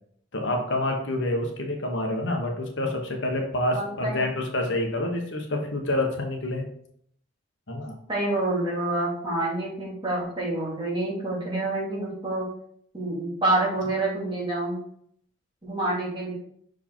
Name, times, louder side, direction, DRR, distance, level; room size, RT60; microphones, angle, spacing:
voice 1, 0.3-6.6 7.7-7.9, left 1 dB, 65° left, 2 dB, 1.2 m, -27 dB
voice 2, 3.7-4.3 8.1-12.4 12.9-14.8 15.6-16.3, right 2 dB, 25° right, -4 dB, 2.3 m, -27 dB
5.8 x 4.9 x 4.5 m, 0.66 s
head